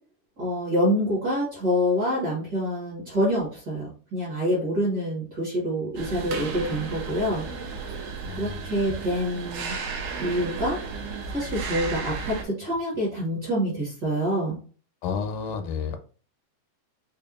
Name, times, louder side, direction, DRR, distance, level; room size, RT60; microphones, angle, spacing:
voice 1, 0.4-7.4 8.4-9.7 10.2-10.8 11.3-14.6, equal, 45° right, -6 dB, 1.4 m, -26 dB
sound 1, 6.0-12.4, right 4 dB, 90° right, 2.2 m, -34 dB
voice 2, 8.3-8.6 15.0-16.0, left 6 dB, 85° left, 8 dB, 2.1 m, -31 dB
5.1 x 2.5 x 2.4 m, 0.40 s
omnidirectional pair, 3.6 m